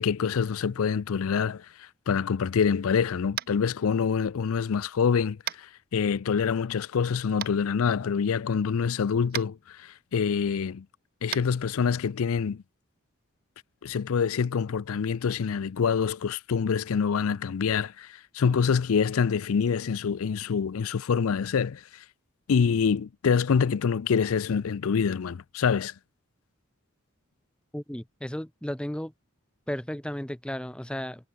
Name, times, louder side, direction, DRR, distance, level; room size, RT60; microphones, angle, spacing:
voice 1, 0.0-10.9 11.2-12.6 13.8-21.8 22.5-25.9, left 6 dB, 75° left, 0.4 m, -26 dB
Tap, 3.3-3.6 5.4-5.6 7.4-7.5 9.3-9.5 11.3-11.4, right 11 dB, 45° right, 0.6 m, -33 dB
voice 2, 27.7-29.1 29.7-31.3, equal, 5° left, 0.5 m, -34 dB
head